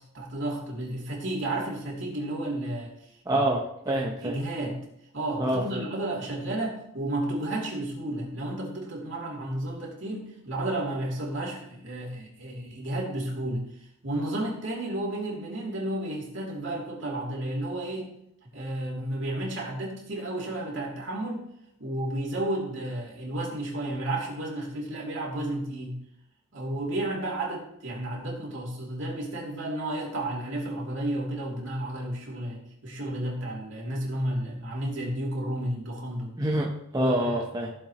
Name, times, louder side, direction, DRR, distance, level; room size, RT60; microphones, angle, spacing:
voice 1, 0.1-3.0 3.3-3.4 3.9-4.8 5.1-13.7 14.0-18.1 18.4-21.5 21.8-26.0 26.5-36.4 36.9-37.3, right 1 dB, 60° right, -3 dB, 2.9 m, -32 dB
voice 2, 3.3-4.4 5.4-5.8 36.4-37.7, right 1 dB, 20° right, -2 dB, 0.8 m, -27 dB
15.5 x 7.2 x 3.0 m, 0.77 s
head